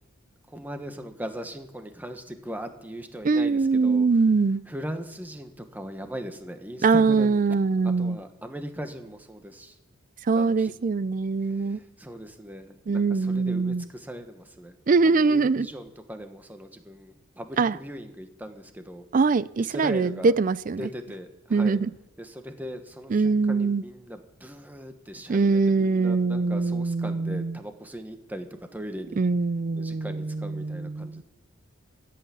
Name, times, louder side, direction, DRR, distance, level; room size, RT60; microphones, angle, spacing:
voice 1, 0.5-4.1 4.7-7.6 7.8-9.8 10.3-10.7 11.4-14.8 15.2-19.0 19.6-20.3 20.8-21.8 22.2-28.5 28.7-29.2 29.7-31.2, equal, 10° right, 7 dB, 1.2 m, -39 dB
voice 2, 3.2-4.6 6.8-8.2 10.3-11.8 12.9-13.9 14.9-15.7 17.6-17.7 19.1-20.9 21.5-21.9 23.1-23.8 25.3-27.6 29.2-31.2, right 4 dB, 40° right, 19 dB, 0.4 m, -23 dB
14.0 x 8.5 x 9.0 m, 0.92 s
head